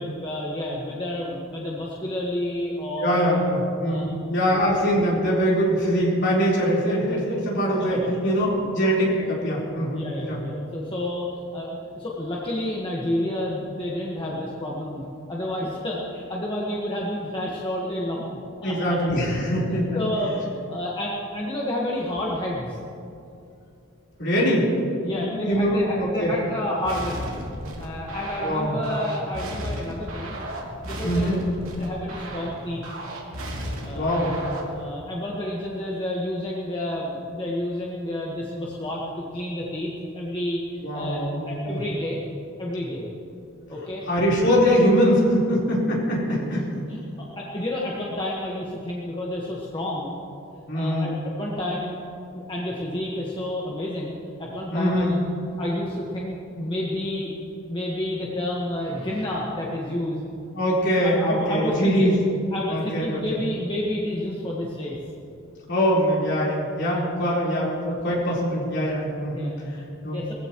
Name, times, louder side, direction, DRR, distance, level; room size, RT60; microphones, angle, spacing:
voice 1, 0.0-3.4 3.8-4.0 7.7-8.1 9.9-11.3 11.5-19.0 19.6-22.8 25.0-27.3 27.8-30.3 30.8-31.4 31.7-32.8 33.8-34.3 34.7-42.2 42.6-43.1 43.7-44.0 46.9-50.1 50.7-52.0 52.3-55.2 55.6-57.3 57.7-60.2 61.0-62.1 62.5-65.0 69.3-69.6 70.1-70.3, left 1 dB, 25° left, -4 dB, 1.5 m, -30 dB
voice 2, 3.0-10.4 18.6-20.0 24.2-24.8 25.2-26.3 28.4-28.8 31.0-31.5 33.9-34.4 40.8-41.8 44.1-46.7 50.7-51.2 54.7-55.2 60.5-62.1 62.7-63.4 65.7-70.2, equal, 55° left, -5 dB, 4.2 m, -23 dB
sound 1, 26.8-34.8, equal, 65° right, 2.8 m, -34 dB
20.5 x 15.0 x 3.1 m, 2.6 s
head